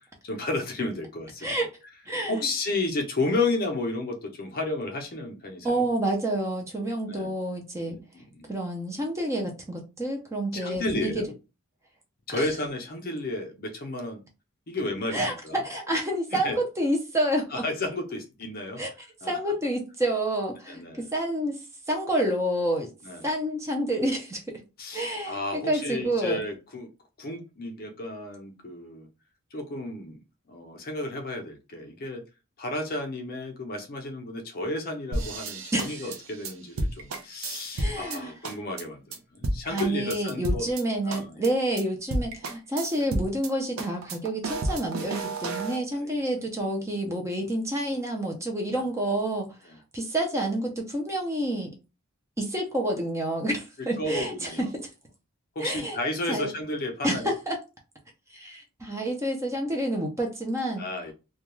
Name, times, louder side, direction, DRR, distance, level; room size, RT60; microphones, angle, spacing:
voice 1, 0.2-1.5 2.3-5.9 7.1-7.3 7.9-8.5 10.5-11.3 12.3-14.2 14.7-15.6 16.3-16.6 17.5-18.8 19.2-19.4 20.7-21.0 23.0-23.3 24.8-26.9 27.2-29.1 29.5-30.2 30.5-32.2 32.6-40.7 41.1-41.4 43.0-43.1 45.9-46.1 49.7-49.8 53.8-54.7 55.6-57.3 60.8-61.1, left 2 dB, 40° left, 0.5 m, -32 dB
voice 2, 2.1-2.5 5.6-7.9 8.5-11.2 12.3-12.5 15.1-17.6 18.8-18.9 19.2-22.9 23.2-24.6 24.9-26.4 35.7-36.1 37.8-38.3 39.7-49.6 49.9-51.7 52.4-54.9 55.6-56.0 56.3-56.5 57.0-57.6 58.3-60.8, right 1 dB, 15° right, 0.4 m, -29 dB
sound 1, 35.1-38.2 38.4-38.8 39.1-39.2 39.4-40.8 41.1-41.5 41.8-41.9 42.1-43.5 43.8-45.8, right 2 dB, 65° right, 0.5 m, -31 dB
2.2 x 2.2 x 3.0 m
head